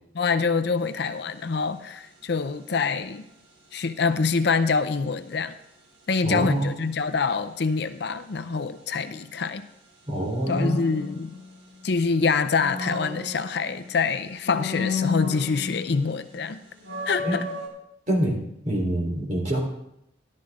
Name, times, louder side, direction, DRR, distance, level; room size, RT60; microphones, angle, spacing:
voice 1, 0.1-3.3 3.7-5.6 6.1-9.7 10.5-11.4 11.8-16.6 17.1-17.4, left 4 dB, 60° left, 11 dB, 0.6 m, -25 dB
sound 1, 0.8-1.1 10.4-11.8 12.3-13.9 14.4-16.0 16.3-16.4 16.8-17.7, left 4 dB, 70° right, 3.6 m, -32 dB
voice 2, 6.2-6.7 10.1-10.8 17.2-17.4 18.1-19.6, right 1 dB, 40° right, -2 dB, 3.6 m, -25 dB
13.5 x 12.0 x 3.7 m, 0.79 s
head